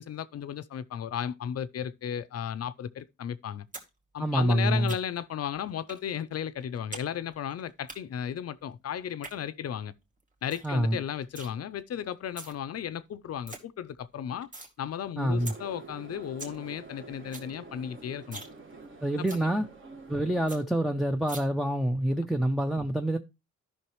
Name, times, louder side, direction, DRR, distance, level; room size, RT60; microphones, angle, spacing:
voice 1, 0.0-3.7 4.1-9.9 10.4-14.5 14.8-18.4 19.2-19.5, left 9 dB, 55° left, 0.6 m, -35 dB
sound 1, 3.7-3.9 4.2-5.3 5.9-6.0 6.4-7.1 7.3-8.0 9.0-9.3 9.8-9.9 10.2-10.3 10.5-10.7 11.0-11.5 12.1-12.5 13.0-13.1 13.2-13.6 14.0-14.7 15.1-15.2 15.5-15.6 16.0-16.1 16.2-16.6 16.9-17.0 17.2-17.5 17.8-17.9 18.2-18.5 18.8-18.9 19.3-19.4 19.8-19.9 20.2-20.3 20.5-20.6 21.3-21.4, right 2 dB, 25° right, 2.2 m, -42 dB
voice 2, 4.2-4.9 10.6-11.0 15.2-15.5 19.0-19.7 20.1-23.2, right 1 dB, ahead, 0.5 m, -26 dB
sound 2, 15.4-20.6, right 3 dB, 45° right, 1.9 m, -47 dB
13.5 x 5.7 x 3.1 m
cardioid pair, 110°, 29 cm